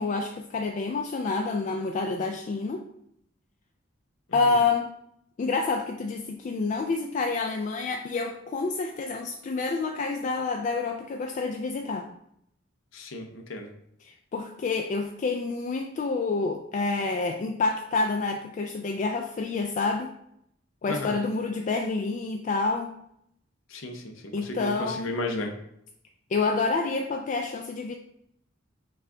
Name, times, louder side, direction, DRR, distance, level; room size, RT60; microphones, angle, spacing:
voice 1, 0.0-2.8 4.3-4.9 5.4-12.1 14.1-20.1 20.8-22.9 24.3-25.1 26.3-27.9, left 3 dB, 40° left, 3 dB, 0.3 m, -28 dB
voice 2, 4.3-4.6 12.9-13.7 20.9-21.2 23.7-25.5, left 2 dB, 90° left, 4 dB, 0.7 m, -34 dB
5.6 x 2.4 x 3.6 m, 0.74 s
head